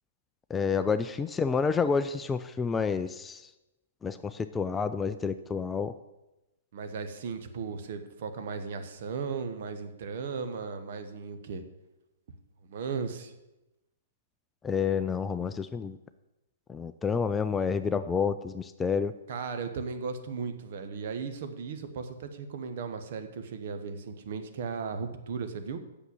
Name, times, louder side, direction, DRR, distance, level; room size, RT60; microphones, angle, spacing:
voice 1, 0.5-3.5 4.0-5.9 14.6-16.0 16.7-19.1, left 5 dB, 15° left, 11 dB, 0.4 m, -29 dB
voice 2, 6.7-11.6 12.7-13.3 19.3-25.8, right 5 dB, 50° right, 7 dB, 1.1 m, -36 dB
8.2 x 6.7 x 7.5 m, 0.99 s
figure-of-eight pair, 115°, 0 cm